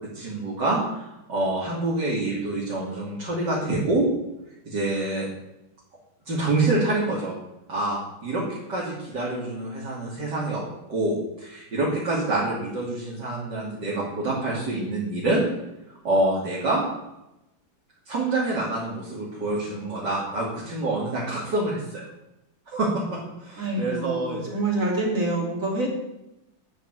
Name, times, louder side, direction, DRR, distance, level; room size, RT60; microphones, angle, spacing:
voice 1, 0.1-4.1 4.7-5.3 6.3-7.3 7.7-10.6 10.9-15.4 15.9-16.8 18.1-22.0 22.7-24.6, right 2 dB, 55° right, -6 dB, 3.6 m, -26 dB
voice 2, 23.6-25.9, right 2 dB, 40° right, -2 dB, 4.0 m, -26 dB
9.7 x 8.1 x 9.6 m, 0.90 s
omnidirectional pair, 2.2 m